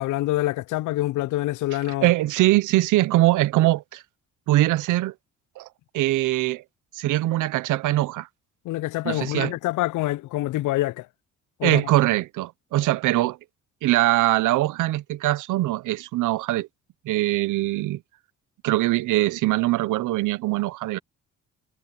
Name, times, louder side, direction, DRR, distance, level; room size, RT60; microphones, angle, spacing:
voice 1, 0.0-2.1 8.6-11.1 11.6-11.9, left 16 dB, 80° left, 0.5 m, -26 dB
voice 2, 2.0-4.0 4.5-5.1 5.6-5.7 5.9-6.6 7.0-8.3 9.0-9.5 11.6-13.4 13.8-16.7 17.1-18.0 18.6-21.0, right 16 dB, 85° right, 0.7 m, -22 dB
cardioid pair, 90°, 30 cm